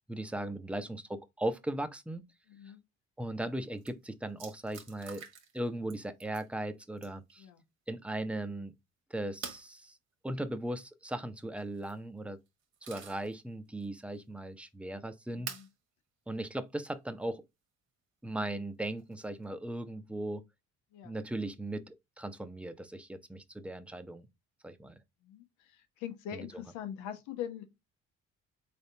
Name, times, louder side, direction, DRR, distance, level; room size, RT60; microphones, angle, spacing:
voice 1, 0.1-2.2 3.2-5.2 5.5-7.5 7.9-8.7 9.1-10.0 10.2-12.4 12.8-15.5 16.3-17.4 18.2-20.5 21.0-24.3 24.6-24.9 26.3-26.5, right 1 dB, 5° right, 0.6 m, -38 dB
voice 2, 2.5-2.8 7.4-7.6 15.3-15.7 20.9-21.2 25.2-27.6, left 10 dB, 85° left, 0.8 m, -42 dB
sound 1, 3.5-3.6 3.8-3.9 4.4-5.6 5.9-6.5 7.0-7.3 9.4-9.7 11.6-12.0 12.5-13.3 13.8-13.9 15.5-15.7 16.9-17.0 19.0-19.4, right 7 dB, 60° right, 1.4 m, -46 dB
3.8 x 3.4 x 2.7 m
supercardioid pair, 75°, 29 cm